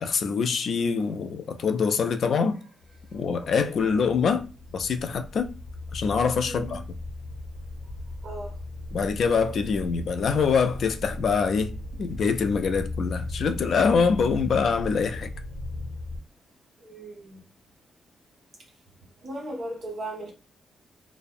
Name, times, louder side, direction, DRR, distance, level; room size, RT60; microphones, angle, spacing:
voice 1, 0.0-2.6 3.1-4.4 4.7-5.5 5.9-6.8 8.9-11.7 12.0-15.3, left 5 dB, 60° left, 0.3 m, -24 dB
sound 1, 2.8-16.2, left 2 dB, 90° left, 1.1 m, -37 dB
voice 2, 3.4-3.9 6.4-6.8 8.2-8.6 16.8-17.4 19.2-20.3, right 1 dB, 45° right, 1.0 m, -37 dB
2.5 x 2.0 x 2.3 m
cardioid pair, 120°, 0 cm